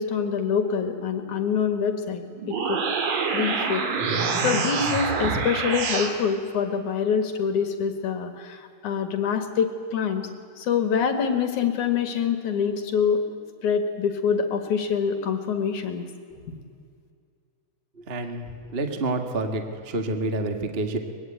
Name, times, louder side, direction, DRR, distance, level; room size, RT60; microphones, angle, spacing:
voice 1, 0.0-2.2 2.5-2.8 3.3-3.8 4.1-10.3 10.6-13.2 13.6-16.1 16.5-16.6, left 6 dB, 60° left, 7 dB, 2.9 m, -25 dB
sound 1, 2.3-6.1, right 5 dB, 65° right, 3.8 m, -26 dB
voice 2, 17.9-21.0, right 2 dB, 40° right, 6 dB, 0.8 m, -28 dB
24.0 x 21.0 x 9.2 m, 2.2 s
omnidirectional pair, 4.2 m